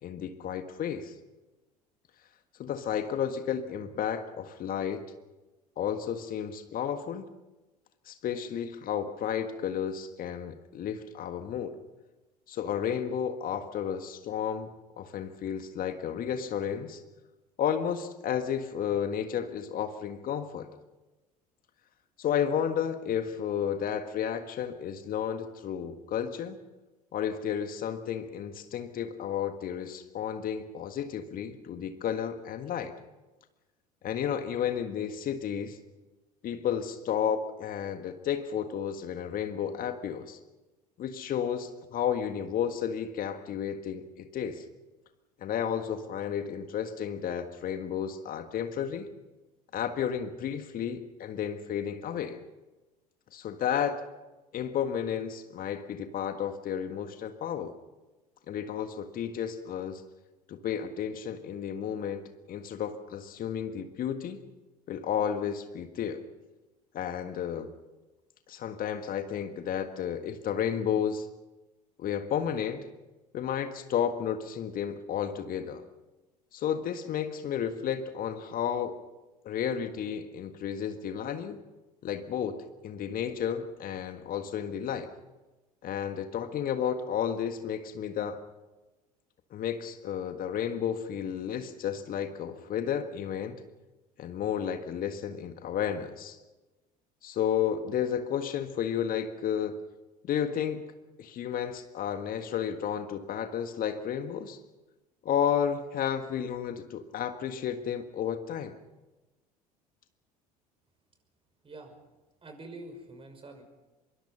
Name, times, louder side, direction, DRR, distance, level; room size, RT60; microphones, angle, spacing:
voice 1, 0.0-1.1 2.6-5.0 5.8-7.3 8.0-11.8 12.5-17.0 17.6-20.7 22.2-26.6 27.1-32.9 34.0-35.8 36.4-40.4 41.0-44.6 45.4-49.1 49.7-52.4 53.3-54.0 54.5-57.8 58.5-60.0 60.5-64.4 64.9-66.2 66.9-67.7 68.5-71.3 72.0-72.9 73.3-75.8 76.5-79.0 79.4-81.6 82.0-85.1 85.8-88.4 89.5-93.6 94.2-96.4 97.2-99.8 100.2-100.8 101.2-104.6 105.2-108.7, left 8 dB, 45° left, 7 dB, 1.7 m, -32 dB
voice 2, 111.6-112.0 112.4-113.6, right 2 dB, 25° right, 6 dB, 5.8 m, -46 dB
25.0 x 23.0 x 5.8 m, 1.1 s
figure-of-eight pair, 65°, 20 cm